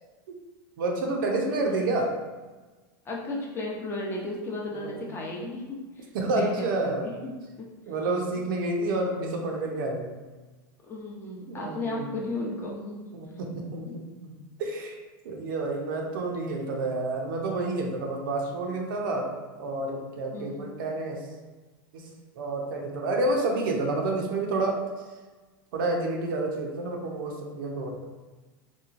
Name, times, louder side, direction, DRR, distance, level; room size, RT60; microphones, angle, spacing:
voice 1, 0.8-2.1 4.7-5.0 6.1-7.1 7.9-10.1 11.5-12.1 13.1-15.0 15.2-19.3 19.6-21.2 21.9-22.0 22.4-24.7 25.7-28.0, right 2 dB, 70° right, 1 dB, 0.6 m, -29 dB
voice 2, 1.4-1.9 3.1-7.7 10.9-13.0 13.9-14.0 20.3-20.7, left 2 dB, 20° left, -2 dB, 0.5 m, -35 dB
2.9 x 2.3 x 2.5 m, 1.3 s
supercardioid pair, 125°, 12 cm